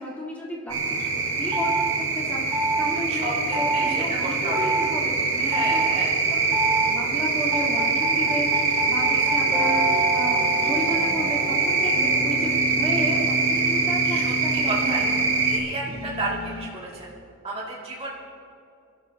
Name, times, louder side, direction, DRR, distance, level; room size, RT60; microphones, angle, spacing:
voice 1, 0.0-5.9 6.3-6.5 6.8-15.0 15.3-15.4, equal, 5° left, -6 dB, 3.3 m, -33 dB
sound 1, 0.7-15.6, right 4 dB, 65° right, 2.1 m, -24 dB
sound 2, 1.5-1.9 2.5-2.9 3.5-3.9 4.5-4.8 5.5-5.9 6.5-6.9 7.5-12.6, right 2 dB, 10° right, 3.5 m, -27 dB
voice 2, 3.1-4.7 5.4-6.1 9.1-9.2 14.0-15.0 15.4-17.1 17.4-18.1, right 2 dB, 25° right, -6 dB, 2.3 m, -32 dB
sound 3, 9.5-16.9, equal, 45° right, 1.6 m, -33 dB
27.5 x 13.0 x 2.8 m, 2.6 s
head